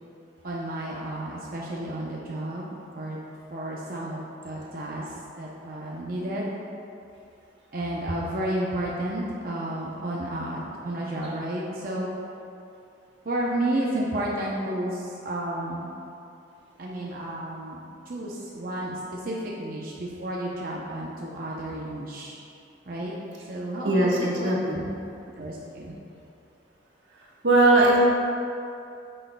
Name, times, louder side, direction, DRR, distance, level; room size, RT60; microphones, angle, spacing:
voice 1, 0.4-3.2 3.5-4.2 4.4-6.5 7.7-12.1 13.2-15.9 16.8-22.3 22.9-23.1 23.5-24.8 25.4-25.9, right 1 dB, 50° right, -4 dB, 0.7 m, -31 dB
voice 2, 24.4-24.8 27.4-28.0, right 2 dB, 85° right, -4 dB, 1.3 m, -19 dB
8.8 x 6.4 x 2.3 m, 2.6 s
head